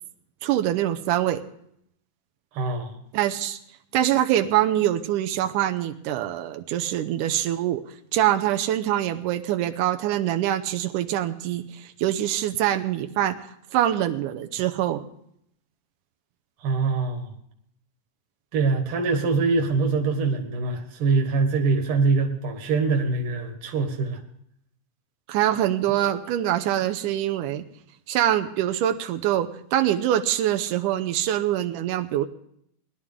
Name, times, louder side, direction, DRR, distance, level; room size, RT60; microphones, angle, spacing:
voice 1, 0.4-1.4 3.1-3.6 3.9-7.8 8.1-13.4 13.7-15.0 25.3-27.6 28.1-32.3, right 12 dB, 90° right, 6 dB, 2.3 m, -24 dB
voice 2, 2.5-3.0 16.6-17.3 18.5-24.2, right 4 dB, 50° right, 4 dB, 2.1 m, -24 dB
20.5 x 11.5 x 3.6 m, 0.70 s
omnidirectional pair, 3.6 m